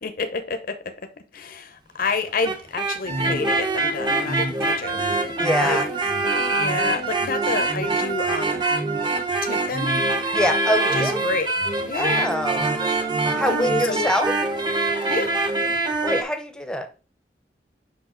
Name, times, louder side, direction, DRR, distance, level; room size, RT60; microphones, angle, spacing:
voice 1, 0.0-5.3 5.6-5.8 6.5-8.6 9.4-10.0 10.9-11.5 11.8-12.3 13.4-14.1 15.0-15.4, left 4 dB, 55° left, 0.7 m, -29 dB
sound 1, 2.3-16.2, right 2 dB, 25° right, 0.8 m, -24 dB
voice 2, 5.4-5.9 10.3-11.2 11.9-12.7 13.3-14.4 16.0-16.9, equal, 5° left, 0.7 m, -24 dB
6.3 x 5.3 x 3.8 m
head